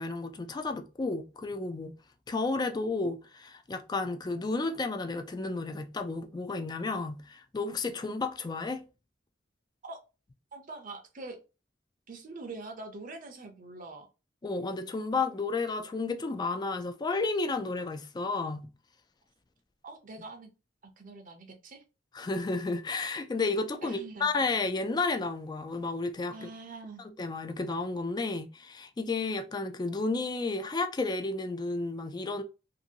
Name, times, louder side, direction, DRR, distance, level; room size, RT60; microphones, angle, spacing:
voice 1, 0.0-1.9 2.3-8.8 14.4-18.7 22.1-26.5 27.2-32.4, left 3 dB, 20° left, 0.3 m, -32 dB
voice 2, 10.5-11.4 12.1-14.1 19.8-20.5 20.8-21.8 23.8-24.3 26.3-27.1, right 3 dB, 45° right, 0.6 m, -44 dB
2.6 x 2.5 x 2.7 m
head